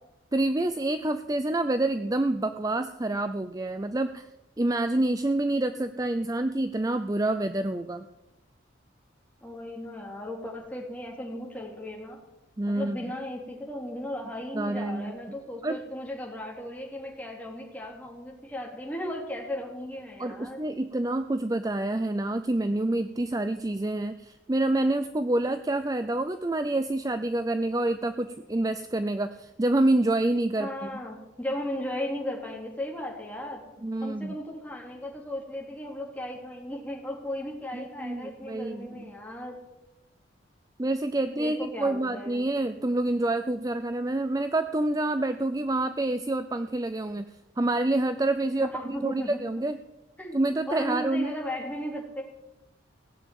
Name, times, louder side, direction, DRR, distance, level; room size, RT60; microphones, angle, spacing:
voice 1, 0.3-4.3 4.6-8.1 12.6-13.0 14.5-15.1 15.6-15.8 20.2-30.9 33.8-34.3 37.7-39.1 40.8-47.3 47.6-49.8 50.3-51.4, right 2 dB, 20° right, 9 dB, 0.5 m, -27 dB
voice 2, 9.4-12.2 12.7-20.6 30.6-33.6 34.0-39.6 41.3-42.4 48.7-49.4 50.2-50.4 50.7-52.2, left 1 dB, 10° left, -2 dB, 3.3 m, -36 dB
17.5 x 7.4 x 9.3 m, 1.0 s
head